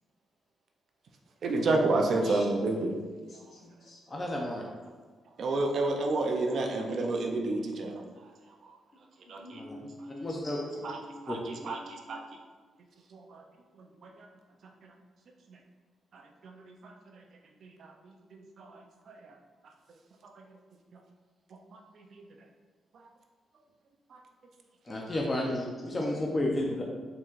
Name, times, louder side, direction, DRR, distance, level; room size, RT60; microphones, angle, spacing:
voice 1, 1.4-2.9 5.4-8.0 8.6-8.7 9.3-9.6 10.8-11.0 11.2-12.2 13.1-13.4 14.0-14.3 14.8-14.9 15.5-15.6 16.1-17.2 17.6-18.8 19.1-19.3 20.2-20.4 21.7-22.2 24.1-24.2, right 2 dB, 55° right, 2 dB, 0.5 m, -31 dB
voice 2, 2.0-2.5 2.7-2.9 3.3-4.0 9.4-12.3 26.2-26.8, left 1 dB, 55° left, -3 dB, 1.0 m, -48 dB
voice 3, 4.1-4.6 9.5-9.9 10.2-10.8 11.3-11.4 24.9-26.8, left 1 dB, 20° left, -1 dB, 0.5 m, -32 dB
4.6 x 3.7 x 2.4 m, 1.4 s
cardioid pair, 140°, 0 cm